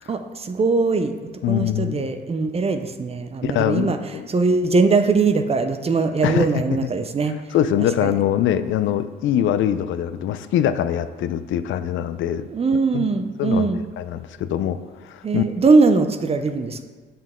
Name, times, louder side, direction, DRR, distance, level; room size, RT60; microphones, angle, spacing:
voice 1, 0.1-1.2 1.5-4.0 4.3-7.4 8.0-8.1 12.5-13.8 15.2-16.8, right 4 dB, 30° right, 8 dB, 0.5 m, -20 dB
voice 2, 1.4-2.1 3.4-4.3 6.2-6.5 7.5-12.5 12.9-13.1 13.4-15.4, left 10 dB, 75° left, 12 dB, 0.4 m, -23 dB
7.5 x 5.5 x 3.7 m, 1.4 s
cardioid pair, 90°, 20 cm